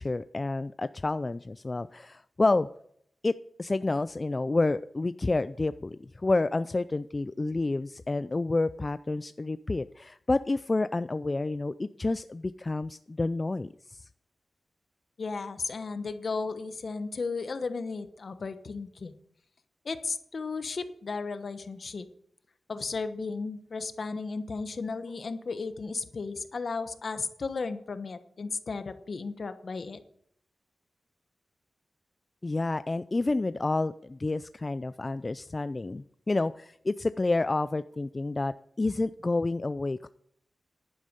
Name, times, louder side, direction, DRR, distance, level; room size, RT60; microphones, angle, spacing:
voice 1, 0.0-2.7 3.2-3.3 3.6-14.0 32.4-40.1, left 2 dB, 35° left, 13 dB, 0.4 m, -29 dB
voice 2, 15.2-19.1 19.8-22.0 22.7-30.0, left 4 dB, 65° left, 10 dB, 1.1 m, -34 dB
11.0 x 9.7 x 5.2 m, 0.68 s
cardioid pair, 60°, 0 cm